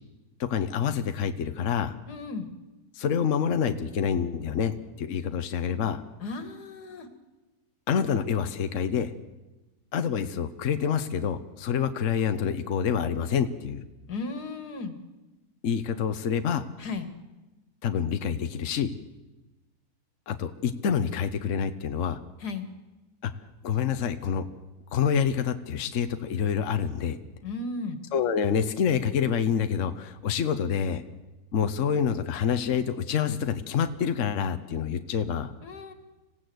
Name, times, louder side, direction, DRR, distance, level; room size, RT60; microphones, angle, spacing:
voice 1, 0.4-1.9 2.9-6.0 7.9-9.1 9.9-13.8 15.6-16.6 17.8-18.9 20.3-22.2 23.2-23.3 23.6-24.5 24.9-27.2 28.1-31.0 31.5-35.5, left 7 dB, 55° left, 9 dB, 1.2 m, -27 dB
voice 2, 2.1-2.5 6.2-7.1 14.1-14.9 16.8-17.1 22.4-22.7 27.4-28.0 35.6-35.9, left 3 dB, 85° left, 9 dB, 2.4 m, -35 dB
26.0 x 16.5 x 7.9 m, 1.1 s
omnidirectional pair, 1.7 m